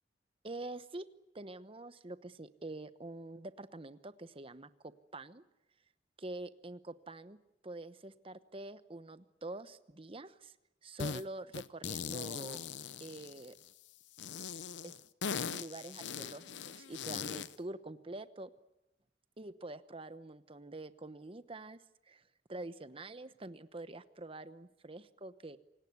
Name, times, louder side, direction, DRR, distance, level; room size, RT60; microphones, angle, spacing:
voice 1, 0.4-1.1 1.3-5.4 6.2-7.4 7.6-10.5 10.8-12.6 13.0-13.5 14.8-14.9 15.5-18.5 19.4-22.2 22.5-25.6, right 2 dB, 30° right, 13 dB, 1.0 m, -46 dB
sound 1, 11.0-11.2 11.5-13.7 14.2-17.6, left 6 dB, 75° left, 0.8 m, -40 dB
27.5 x 18.0 x 9.6 m, 0.95 s
head